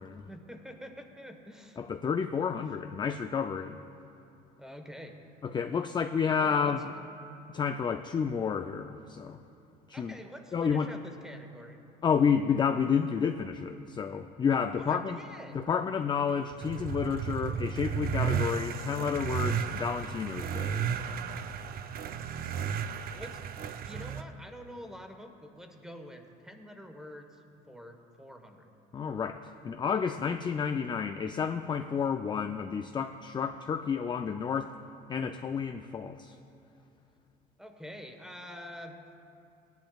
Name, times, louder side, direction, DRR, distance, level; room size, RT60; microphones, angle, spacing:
voice 1, 0.3-1.8 2.6-2.8 4.6-5.2 6.4-7.0 9.9-11.8 14.8-15.6 23.1-23.4 23.8-27.4 27.7-28.7 37.6-39.0, equal, 5° right, 5 dB, 1.3 m, -46 dB
voice 2, 1.8-3.8 5.4-6.8 7.5-9.4 9.9-10.2 10.5-10.9 12.0-15.2 15.5-20.9 28.9-34.7 35.1-36.3, left 6 dB, 20° left, 7 dB, 0.4 m, -30 dB
sound 1, 16.4-24.2, right 7 dB, 50° right, 0.6 m, -33 dB
17.5 x 10.5 x 2.4 m, 2.9 s
supercardioid pair, 85°, 20 cm